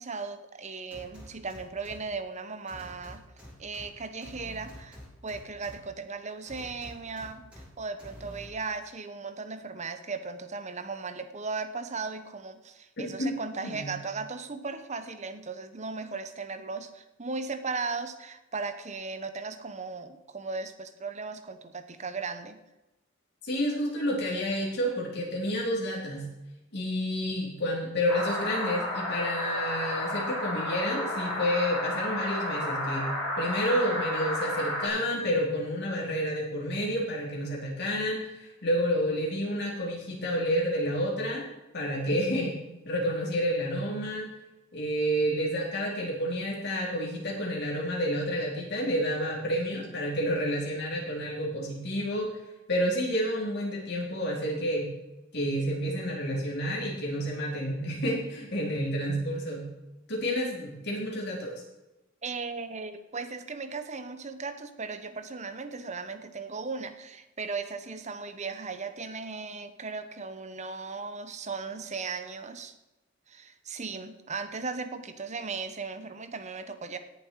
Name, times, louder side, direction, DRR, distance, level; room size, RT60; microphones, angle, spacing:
voice 1, 0.0-3.2 3.6-5.0 5.2-22.6 62.2-72.7 73.3-77.0, right 4 dB, 35° right, 10 dB, 1.0 m, -37 dB
sound 1, 0.9-2.0 2.7-3.9 4.2-5.8 6.5-7.6 8.0-8.5, equal, 5° right, 3.9 m, -46 dB
voice 2, 13.0-13.3 13.6-13.9 23.4-26.3 26.7-33.1 33.4-41.4 41.7-42.6 42.9-44.3 44.7-52.3 52.7-54.9 55.3-59.7 60.1-61.5, equal, 55° left, -3 dB, 4.2 m, -29 dB
sound 2, 28.1-34.9, left 1 dB, 20° left, 5.0 m, -32 dB
17.5 x 7.3 x 4.8 m, 1.0 s
head